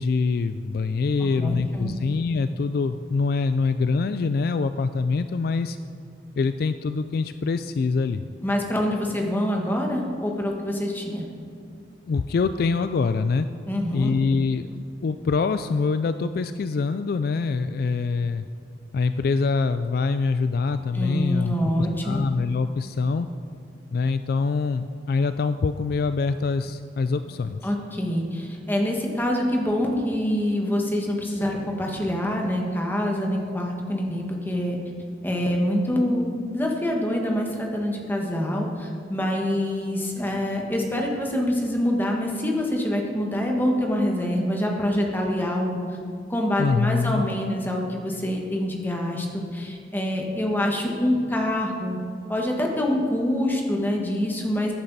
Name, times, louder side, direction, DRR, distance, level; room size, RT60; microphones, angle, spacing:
voice 1, 0.0-5.8 6.4-8.2 12.1-13.5 13.9-14.7 15.0-18.5 18.9-23.3 23.9-27.6 46.6-47.3, left 4 dB, 55° left, 11 dB, 0.3 m, -24 dB
voice 2, 1.2-1.9 8.4-11.3 13.7-14.1 20.9-22.3 27.6-34.8 35.2-45.8 46.3-52.0 52.3-54.7, left 1 dB, 10° left, 0 dB, 1.4 m, -25 dB
14.5 x 9.9 x 4.1 m, 2.4 s
head